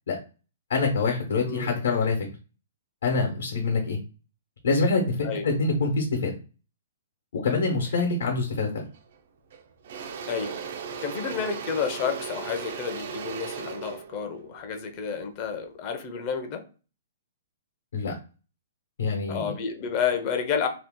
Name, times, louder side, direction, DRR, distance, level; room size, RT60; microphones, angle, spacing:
voice 1, 0.7-2.3 3.0-4.0 4.6-6.3 7.3-8.8 17.9-18.1 19.0-19.5, left 3 dB, 75° left, 1 dB, 1.0 m, -25 dB
Engine / Drill, 8.9-9.2 9.5-15.6, right 6 dB, 50° right, 0.4 m, -37 dB
voice 2, 10.3-10.6 11.0-16.6 19.3-20.7, left 7 dB, 30° left, 5 dB, 0.5 m, -30 dB
2.8 x 2.3 x 3.6 m, 0.34 s
hypercardioid pair, 165°, 0 cm